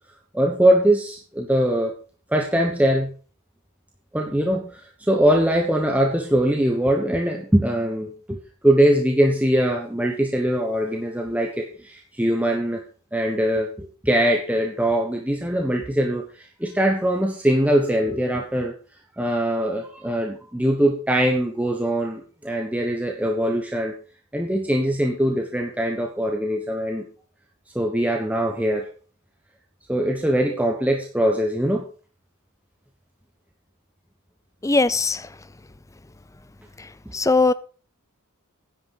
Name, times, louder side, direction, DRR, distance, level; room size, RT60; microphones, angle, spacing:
voice 1, 0.3-1.9 2.3-3.1 4.1-12.8 13.1-18.7 19.2-23.9 24.3-27.0 27.7-28.9 29.9-31.8, right 1 dB, 5° right, 1.2 m, -22 dB
voice 2, 34.6-35.3 37.1-37.5, left 3 dB, 15° left, 0.5 m, -19 dB
10.5 x 8.9 x 5.6 m
head